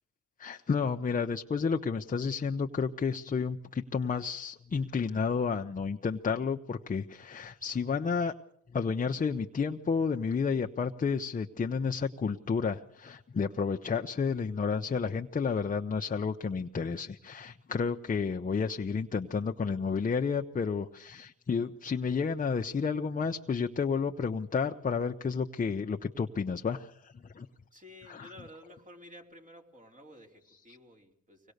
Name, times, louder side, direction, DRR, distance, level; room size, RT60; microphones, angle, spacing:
voice 1, 0.4-8.3 8.7-27.5 28.1-28.3 30.7-30.8, left 5 dB, 25° left, 6 dB, 0.9 m, -31 dB
voice 2, 27.7-31.5, equal, 25° right, 3 dB, 4.0 m, -52 dB
24.5 x 18.5 x 6.6 m, 0.69 s
cardioid pair, 90°, 30 cm